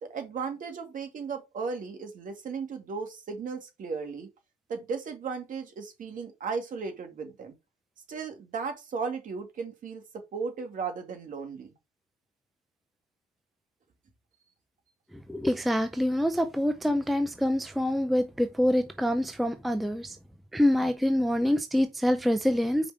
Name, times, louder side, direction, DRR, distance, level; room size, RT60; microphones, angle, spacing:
voice 1, 0.0-4.3 4.7-7.5 8.1-11.7, right 5 dB, 45° right, 2.3 m, -35 dB
voice 2, 15.1-20.2 20.5-22.9, left 1 dB, ahead, 0.5 m, -26 dB
5.2 x 5.1 x 5.0 m
cardioid pair, 105°, 18 cm